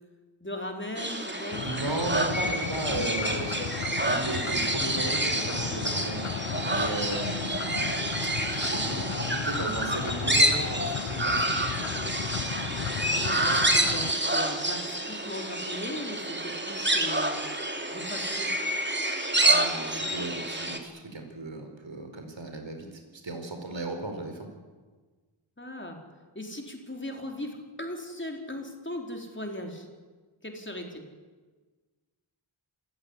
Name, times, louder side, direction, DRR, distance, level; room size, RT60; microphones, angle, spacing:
voice 1, 0.4-1.6 2.9-3.7 13.1-17.4 17.9-18.5 25.6-26.0 26.3-29.9 30.4-31.0, left 1 dB, 25° left, 3 dB, 4.5 m, -38 dB
sound 1, 1.0-20.8, right 1 dB, 20° right, 2.9 m, -28 dB
sound 2, 1.5-14.1, left 8 dB, 80° left, 0.9 m, -35 dB
voice 2, 1.6-3.6 4.0-6.3 6.6-7.9 8.5-11.6 19.5-24.5, right 2 dB, 65° right, 5 dB, 4.7 m, -35 dB
27.5 x 16.0 x 9.9 m, 1.4 s
wide cardioid pair, 70°, 49 cm